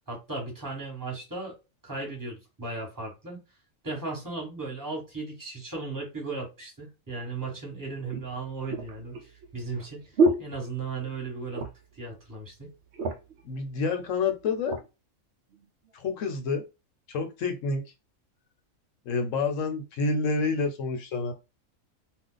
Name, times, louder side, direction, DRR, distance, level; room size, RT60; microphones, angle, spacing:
voice 1, 0.1-1.6 1.8-3.4 3.8-11.7 11.9-12.7, right 3 dB, 15° right, 1.3 m, -36 dB
sound 1, 7.2-7.3 8.1-11.2 11.5-12.0 12.3-12.4 12.7-13.4 14.1-14.9 15.5-15.7, right 2 dB, 60° right, 0.8 m, -29 dB
voice 2, 13.4-14.8 15.9-16.6 17.1-17.8 19.1-21.3, left 4 dB, 70° left, 1.0 m, -28 dB
2.5 x 2.3 x 3.8 m
omnidirectional pair, 1.4 m